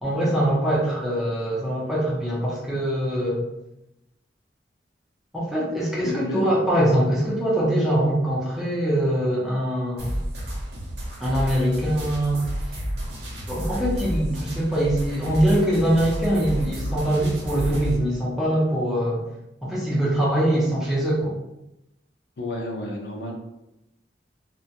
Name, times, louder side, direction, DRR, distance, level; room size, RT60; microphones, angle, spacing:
voice 1, 0.0-3.4 5.3-10.2 11.2-12.4 13.5-19.2 19.6-21.3, right 1 dB, ahead, -7 dB, 0.5 m, -23 dB
voice 2, 6.0-6.5 22.4-23.3, left 1 dB, 75° left, 0 dB, 0.5 m, -31 dB
sound 1, 10.0-18.0, equal, 75° right, 0.8 m, -31 dB
2.2 x 2.1 x 2.7 m, 0.89 s
head